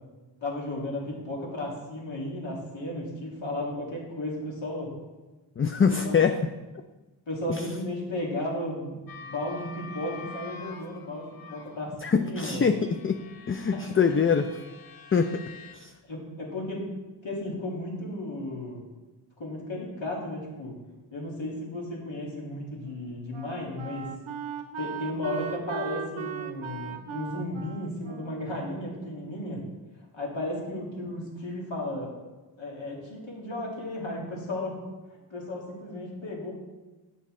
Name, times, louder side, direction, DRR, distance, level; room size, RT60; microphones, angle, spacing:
voice 1, 0.4-4.9 6.0-6.2 7.3-12.7 16.1-16.9 17.2-18.8 19.4-20.8 21.1-24.1 24.8-29.7 30.1-32.1 32.6-34.8 35.3-36.5, left 1 dB, 70° left, -3 dB, 1.9 m, -34 dB
voice 2, 5.6-6.4 7.5-7.6 12.0-13.2 13.5-14.5 15.1-15.4 15.7-15.9, left 6 dB, 30° left, 7 dB, 0.4 m, -24 dB
sound 1, 9.1-11.8 12.5-15.8, left 4 dB, 50° left, 0.7 m, -46 dB
Wind instrument woodwind instrument, 22.3-29.6, right 8 dB, 80° right, 0.6 m, -39 dB
7.5 x 5.5 x 3.6 m, 1.2 s
cardioid pair, 40°, 47 cm